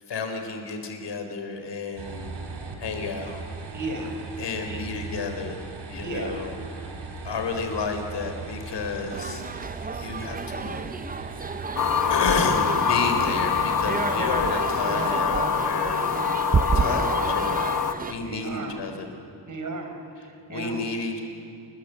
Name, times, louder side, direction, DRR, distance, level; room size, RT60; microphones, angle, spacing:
voice 1, 0.1-2.3 2.8-3.4 4.4-5.6 5.9-6.9 7.2-9.4 9.9-10.9 12.1-16.0 16.7-17.7 18.1-19.1 20.2-21.2, left 4 dB, 70° left, 5 dB, 4.2 m, -31 dB
sound 1, 2.0-15.1, right 4 dB, 65° right, 4.1 m, -38 dB
voice 2, 3.7-4.2 4.7-4.8 6.0-6.4 18.2-18.7 19.5-20.8, right 2 dB, 40° right, 4 dB, 4.8 m, -34 dB
sound 2, 9.1-18.1, right 5 dB, 20° right, 0.5 m, -30 dB
sound 3, 11.8-17.9, left 7 dB, 45° left, 1.3 m, -25 dB
29.5 x 21.5 x 8.4 m, 2.7 s
wide cardioid pair, 135°, 44 cm